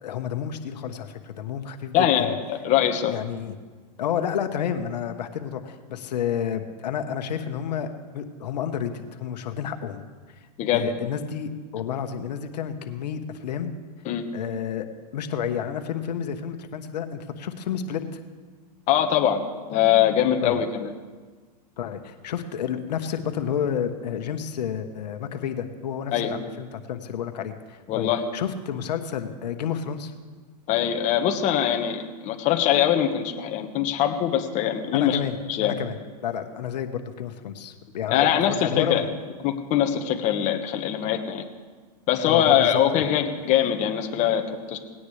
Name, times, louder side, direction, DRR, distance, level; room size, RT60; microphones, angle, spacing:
voice 1, 0.0-2.3 3.1-3.5 4.0-10.0 10.7-13.7 14.3-14.9 15.1-18.2 20.4-20.6 21.8-30.1 34.9-35.3 35.6-35.9 36.2-39.1 42.2-43.0, left 8 dB, 85° left, 7 dB, 1.2 m, -30 dB
voice 2, 1.9-3.1 10.6-10.8 14.0-14.2 18.9-19.4 19.7-20.9 26.1-26.3 27.9-28.2 30.7-35.2 35.5-35.8 38.1-39.0 39.4-41.4 42.1-44.8, left 10 dB, 35° left, 4 dB, 1.3 m, -22 dB
19.0 x 17.0 x 3.3 m, 1.4 s
supercardioid pair, 140°, 21 cm